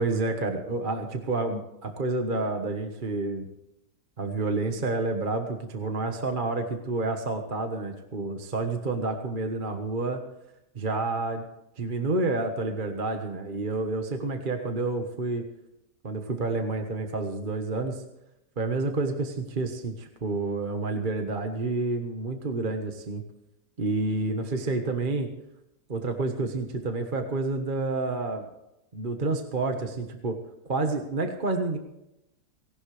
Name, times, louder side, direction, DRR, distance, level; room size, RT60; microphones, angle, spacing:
voice 1, 0.0-3.5 4.2-10.2 10.7-11.5 11.8-15.4 16.0-18.0 18.6-23.2 23.8-25.3 25.9-28.5 28.9-30.4 30.7-31.8, right 3 dB, 30° right, 4 dB, 1.3 m, -29 dB
18.5 x 17.5 x 3.3 m, 0.85 s
omnidirectional pair, 1.9 m